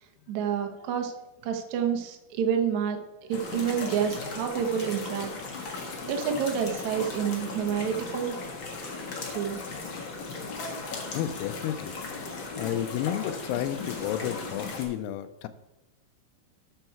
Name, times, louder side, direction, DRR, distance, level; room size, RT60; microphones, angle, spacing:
voice 1, 0.3-1.1 1.4-5.3 5.6-5.8 6.0-8.4 9.3-9.6, right 8 dB, 75° right, 4 dB, 1.7 m, -29 dB
sound 1, 3.3-14.8, left 4 dB, 60° left, 1.2 m, -37 dB
voice 2, 11.1-11.9 12.6-15.5, left 11 dB, 85° left, 11 dB, 2.7 m, -31 dB
13.5 x 4.6 x 4.5 m, 0.99 s
omnidirectional pair, 4.6 m